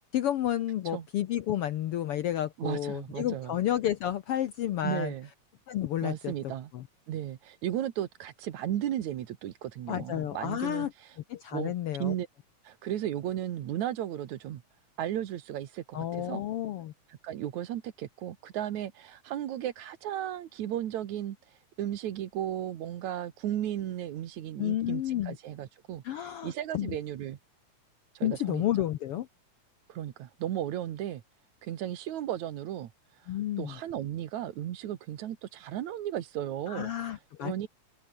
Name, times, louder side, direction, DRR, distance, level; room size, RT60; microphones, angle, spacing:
voice 1, 0.1-5.1 5.7-6.3 6.7-6.8 9.9-10.9 11.3-12.1 15.9-16.9 24.6-25.4 26.0-26.9 28.2-29.3 33.3-33.8 36.7-37.7, left 12 dB, 70° left, 1.4 m, -31 dB
voice 2, 2.6-3.6 4.8-5.3 6.0-6.7 7.1-11.2 11.5-12.3 12.6-14.6 15.0-16.4 17.1-27.4 28.1-28.6 29.9-31.2 31.6-37.7, right 11 dB, 70° right, 2.6 m, -35 dB
open air
omnidirectional pair, 3.5 m